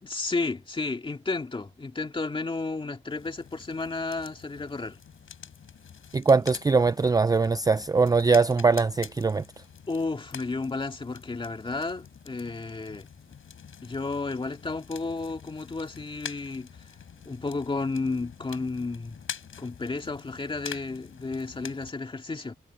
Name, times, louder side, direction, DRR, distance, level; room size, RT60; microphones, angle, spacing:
voice 1, 0.0-5.0 9.9-13.1 13.8-16.7 17.3-19.2 19.6-22.5, left 3 dB, 25° left, 2.1 m, -32 dB
sound 1, 3.1-21.9, left 7 dB, 80° left, 4.6 m, -46 dB
voice 2, 6.1-9.4, right 4 dB, 20° right, 0.4 m, -22 dB
wide cardioid pair, 165°, 21 cm